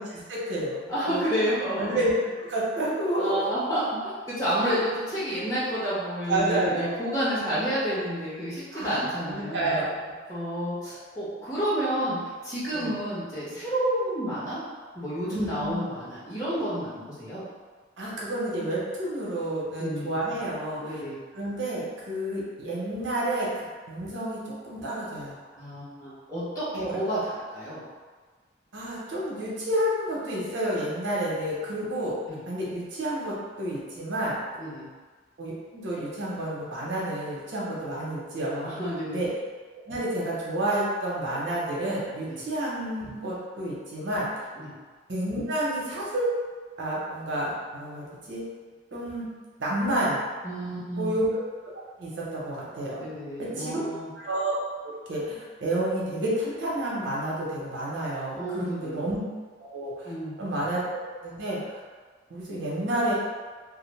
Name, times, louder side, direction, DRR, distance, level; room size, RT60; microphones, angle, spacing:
voice 1, 0.0-1.2 1.7-2.1 2.4-3.5 4.6-4.8 6.3-7.1 7.5-7.6 8.7-9.0 9.3-10.1 12.0-12.1 12.7-12.9 15.3-15.8 18.0-21.0 21.3-25.4 26.7-27.0 28.7-32.2 32.5-34.4 35.4-38.7 39.1-39.3 39.9-44.3 45.1-46.3 46.8-48.4 48.9-49.3 49.6-50.2 51.0-51.7 52.0-53.0 53.4-53.8 54.1-59.2 59.6-60.1 60.4-61.8 62.3-63.1, right 1 dB, 85° right, -6 dB, 0.7 m, -30 dB
voice 2, 0.9-2.0 3.2-9.8 10.3-12.2 12.4-14.6 14.9-16.9 17.2-17.4 19.8-20.1 20.8-21.2 25.6-27.8 32.3-32.4 34.6-34.9 38.6-39.2 42.3-42.4 44.5-44.7 50.4-51.1 53.0-54.1 58.4-59.0 60.0-60.3, equal, 20° left, -12 dB, 1.1 m, -30 dB
2.4 x 2.1 x 3.1 m, 1.5 s
head